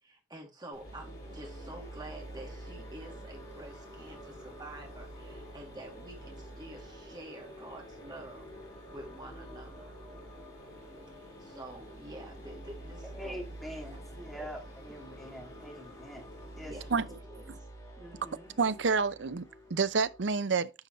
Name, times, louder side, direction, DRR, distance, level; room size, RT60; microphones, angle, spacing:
voice 1, 0.0-8.4 8.9-9.9 11.1-13.4 14.4-14.5 16.6-17.6, right 1 dB, 25° right, 2.5 m, -48 dB
Mechanisms, 0.7-16.9, left 2 dB, 55° left, 3.0 m, -53 dB
sound 1, 0.8-20.3, right 1 dB, 20° left, 3.9 m, -49 dB
sound 2, 1.2-14.2, right 4 dB, 45° right, 2.9 m, -59 dB
voice 2, 13.1-16.7 18.0-18.5, equal, ahead, 2.6 m, -45 dB
voice 3, 18.6-20.7, right 5 dB, 80° right, 0.6 m, -28 dB
9.6 x 5.5 x 3.1 m
head